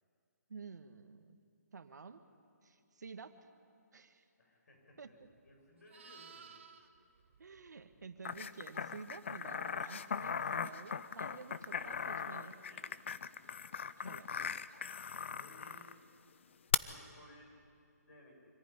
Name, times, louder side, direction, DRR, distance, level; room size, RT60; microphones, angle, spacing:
voice 1, 0.5-1.4 1.7-2.2 2.6-3.4 3.9-4.2 5.0-5.3 7.4-12.5 14.0-14.4, right 5 dB, 80° right, 8 dB, 1.6 m, -51 dB
voice 2, 4.4-6.6 11.2-13.0 15.2-16.0 16.8-17.5 18.0-18.3, left 1 dB, 65° left, 0 dB, 7.3 m, -60 dB
Livestock farm animals working animals, 5.2-8.5 12.8-13.0, right 6 dB, 45° right, 1.3 m, -58 dB
sound 1, 8.2-15.9 16.7-16.8, left 7 dB, 45° left, 0.6 m, -39 dB
25.5 x 14.5 x 10.0 m, 2.5 s
hypercardioid pair, 175°, 9 cm